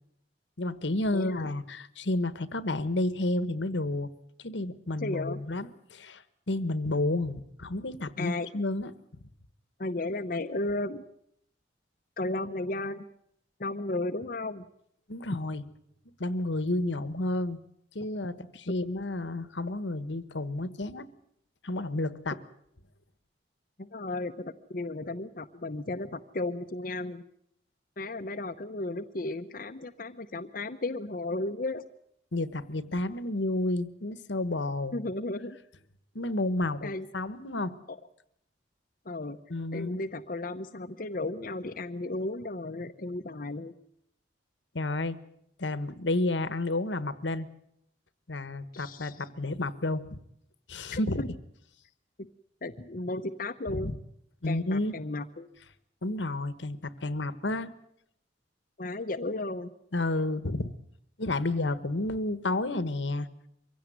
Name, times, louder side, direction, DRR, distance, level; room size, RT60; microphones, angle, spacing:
voice 1, 0.6-4.1 4.4-8.9 15.1-15.6 16.2-17.6 17.9-21.1 21.6-22.4 32.3-34.9 36.1-37.7 39.5-40.0 44.7-45.2 45.6-47.5 48.3-50.2 50.7-51.3 53.7-53.9 54.4-54.9 56.0-57.7 59.9-60.7 61.2-63.3, left 2 dB, 75° left, 15 dB, 1.4 m, -31 dB
voice 2, 1.1-1.5 5.0-5.4 8.2-8.5 9.8-11.0 12.2-13.1 13.6-14.7 23.8-27.2 28.0-31.8 34.9-35.6 36.8-37.0 37.9-38.0 39.0-39.4 39.7-43.7 48.7-49.3 50.9-51.3 52.6-53.9 54.4-55.5 58.8-59.7, left 2 dB, 50° left, 5 dB, 0.9 m, -34 dB
24.0 x 16.5 x 9.4 m, 0.74 s
head